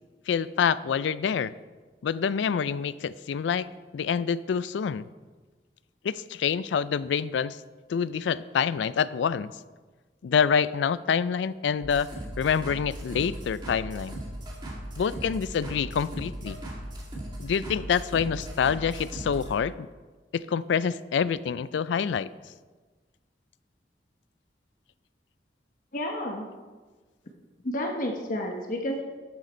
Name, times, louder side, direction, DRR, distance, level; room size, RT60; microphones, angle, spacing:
voice 1, 0.3-1.5 2.0-3.7 3.9-5.1 6.0-7.6 7.9-9.5 10.2-12.1 12.4-14.2 15.0-16.6 17.4-19.9 20.3-22.3, left 7 dB, 85° left, 17 dB, 0.3 m, -26 dB
sound 1, 11.8-19.5, right 1 dB, 25° right, 1.9 m, -38 dB
voice 2, 25.9-26.5 27.6-29.0, left 1 dB, 50° left, 2 dB, 0.9 m, -30 dB
12.0 x 6.4 x 4.3 m, 1.3 s
head